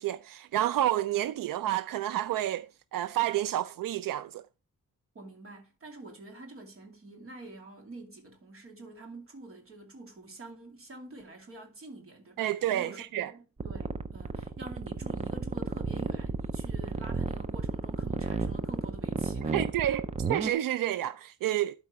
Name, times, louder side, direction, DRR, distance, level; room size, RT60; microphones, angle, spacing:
voice 1, 0.0-4.4 12.4-13.3 19.5-21.7, right 13 dB, 80° right, 0.5 m, -30 dB
voice 2, 5.1-20.0, right 2 dB, 40° right, 2.6 m, -47 dB
sound 1, 13.6-20.5, right 4 dB, 20° right, 0.5 m, -32 dB
12.0 x 4.4 x 4.7 m
wide cardioid pair, 180°, 33 cm